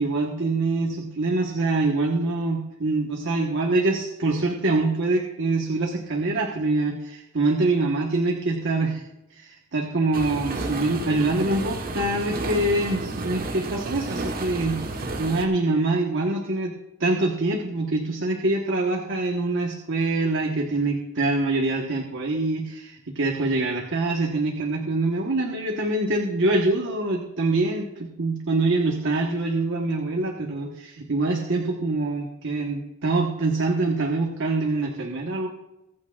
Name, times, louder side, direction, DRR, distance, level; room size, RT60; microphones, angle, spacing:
voice 1, 0.0-9.0 9.3-14.8 15.2-16.7 17.0-35.5, right 2 dB, 60° right, 0 dB, 1.3 m, -25 dB
sound 1, 10.1-15.5, right 2 dB, 45° right, 1.2 m, -31 dB
23.5 x 8.6 x 2.4 m, 0.93 s
head